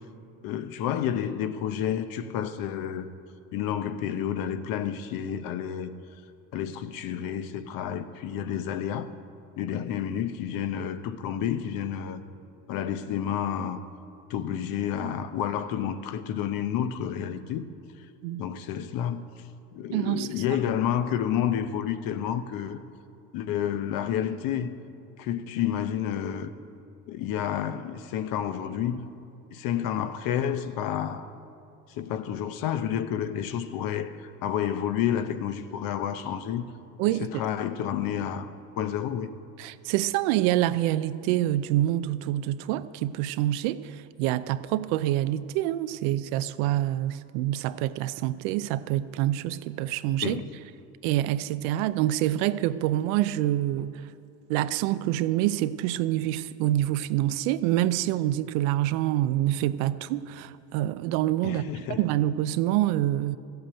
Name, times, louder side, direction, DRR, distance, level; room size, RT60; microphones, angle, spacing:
voice 1, 0.4-3.1 3.5-5.9 6.5-9.1 9.6-12.2 12.7-13.9 14.3-17.7 18.4-19.3 19.7-22.8 23.3-24.7 25.2-26.5 27.1-29.1 29.5-31.3 31.9-36.6 37.2-38.5 38.8-39.3 50.2-50.5 61.4-62.0, left 9 dB, 60° left, 0.9 m, -30 dB
voice 2, 19.9-20.4 37.0-37.4 39.6-50.4 51.0-54.1 54.5-61.6 61.9-63.4, right 14 dB, 85° right, 0.7 m, -26 dB
14.0 x 8.0 x 8.9 m
cardioid pair, 140°, 39 cm